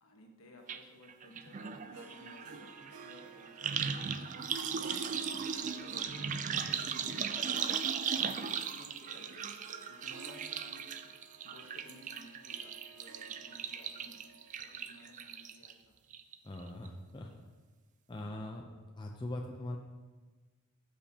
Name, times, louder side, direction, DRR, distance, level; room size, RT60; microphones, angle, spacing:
voice 1, 0.0-2.7 3.0-5.1 5.9-7.6 8.1-9.5 9.8-11.1 11.4-14.2 14.6-15.9, left 1 dB, 70° left, 1 dB, 1.2 m, -56 dB
sound 1, 0.7-0.8 1.1-15.7 16.1-16.6 16.9-17.0, right 7 dB, 35° right, 0.3 m, -38 dB
Harp, 1.9-15.6, right 4 dB, 90° right, 0.6 m, -56 dB
voice 2, 16.4-17.3 18.1-18.6 19.0-19.8, left 1 dB, 20° left, 1 dB, 0.5 m, -41 dB
13.0 x 5.3 x 2.9 m, 1.3 s
head